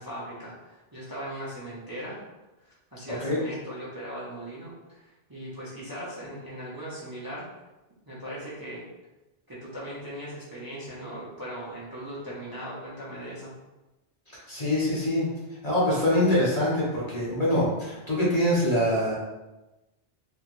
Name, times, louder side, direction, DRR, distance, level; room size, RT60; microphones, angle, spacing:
voice 1, 0.0-2.2 2.6-7.5 8.1-8.9 9.5-13.5, equal, 20° right, -8 dB, 0.8 m, -39 dB
voice 2, 14.5-15.3 15.6-19.1, left 1 dB, 35° left, -7 dB, 1.2 m, -24 dB
3.6 x 3.1 x 3.1 m, 1.0 s
omnidirectional pair, 1.2 m